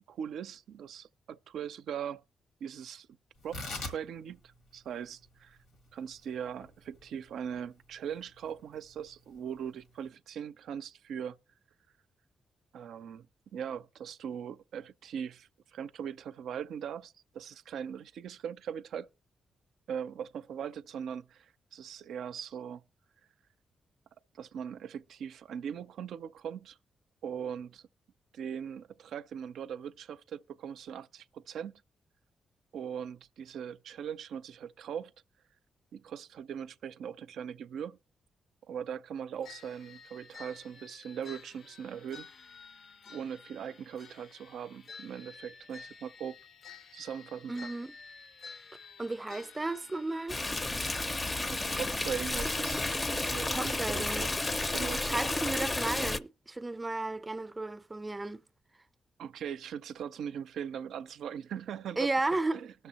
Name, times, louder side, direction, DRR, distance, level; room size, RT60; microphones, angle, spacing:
voice 1, 0.1-2.2 2.6-3.1 3.4-4.4 4.7-5.6 5.9-11.4 12.7-13.3 13.5-19.1 19.9-22.8 24.3-26.8 27.2-27.8 28.3-31.8 32.7-35.1 35.9-38.0 38.7-42.3 43.1-46.4 46.9-47.7 51.5-54.3 54.7-55.1 59.2-62.1 62.5-62.7, right 8 dB, 80° right, 0.4 m, -40 dB
Tearing, 3.4-10.1, left 3 dB, 90° left, 1.6 m, -46 dB
sound 1, 39.4-50.8, left 5 dB, 65° left, 0.6 m, -51 dB
voice 2, 47.5-47.9 49.0-50.4 53.5-54.3 55.0-58.4 62.0-62.6, right 2 dB, 25° right, 0.5 m, -34 dB
Stream, 50.3-56.2, left 2 dB, 30° left, 0.5 m, -32 dB
19.5 x 6.6 x 2.9 m
cardioid pair, 60°, 0 cm